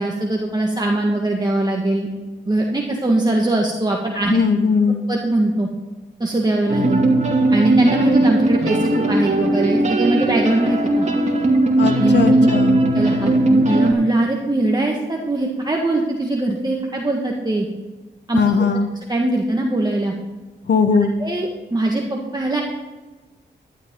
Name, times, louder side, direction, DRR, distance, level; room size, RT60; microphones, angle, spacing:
voice 1, 0.0-2.1 2.5-4.4 5.1-5.7 6.2-7.0 7.5-11.1 11.9-12.2 12.9-17.7 18.3-18.5 19.1-20.1 21.2-22.6, right 2 dB, 20° right, -1 dB, 1.8 m, -21 dB
voice 2, 4.3-5.1 11.8-12.8 18.3-18.9 20.7-21.1, left 5 dB, 60° left, 9 dB, 1.3 m, -18 dB
sound 1, 6.7-13.9, right 1 dB, 35° right, 2.6 m, -18 dB
12.5 x 11.5 x 3.9 m, 1.2 s
cardioid pair, 70°, 20 cm